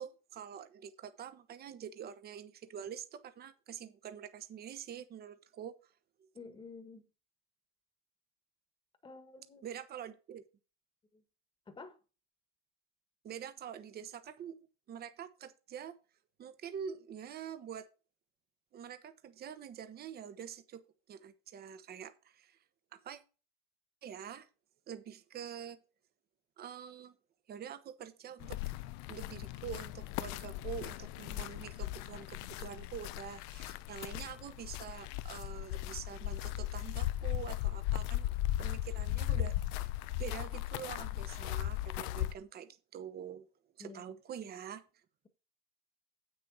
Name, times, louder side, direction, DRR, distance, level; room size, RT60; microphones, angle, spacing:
voice 1, 0.0-5.7 6.2-6.3 9.6-10.4 13.2-14.6 14.9-15.9 16.4-17.8 18.7-20.8 21.1-22.6 22.9-23.2 24.0-24.5 24.9-25.8 26.6-27.1 27.5-28.6 29.1-38.3 38.6-39.9 40.2-43.5 43.8-44.8, right 8 dB, 30° right, 1.0 m, -46 dB
voice 2, 6.3-7.1 9.0-9.7 11.1-11.2 11.7-12.0 43.8-44.0, left 4 dB, 15° left, 1.5 m, -50 dB
sound 1, 28.4-42.3, left 14 dB, 75° left, 0.7 m, -37 dB
8.6 x 6.5 x 4.8 m
cardioid pair, 155°, 30 cm